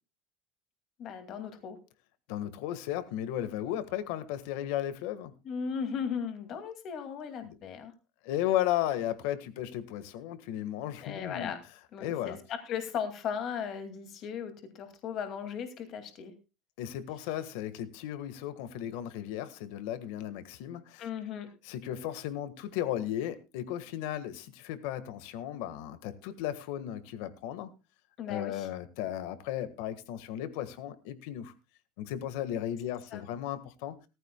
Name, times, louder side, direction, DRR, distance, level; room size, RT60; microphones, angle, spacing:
voice 1, 1.0-1.8 5.4-7.9 11.0-11.6 11.9-16.3 21.0-21.5 28.2-28.7 33.1-33.2, left 7 dB, 35° left, 2.3 m, -37 dB
voice 2, 2.3-5.3 7.4-7.6 8.2-11.5 12.0-12.4 16.8-21.1 21.6-27.7 28.3-31.5 32.0-34.0, left 12 dB, 65° left, 1.5 m, -35 dB
18.0 x 14.5 x 2.3 m
cardioid pair, 180°, 0 cm